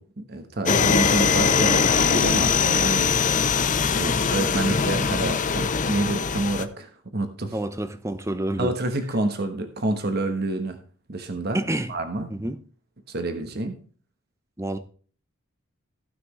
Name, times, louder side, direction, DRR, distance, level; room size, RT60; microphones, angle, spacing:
voice 1, 0.0-3.1 3.9-7.6 8.6-10.8 11.1-11.6 11.9-12.3 13.1-13.8, right 2 dB, 50° right, 1.2 m, -28 dB
sound 1, 0.7-6.7, left 6 dB, 40° left, 0.6 m, -22 dB
voice 2, 7.5-8.7 11.5-11.9 12.3-12.6 14.6-14.8, right 1 dB, 15° right, 0.8 m, -28 dB
15.5 x 6.0 x 3.2 m
head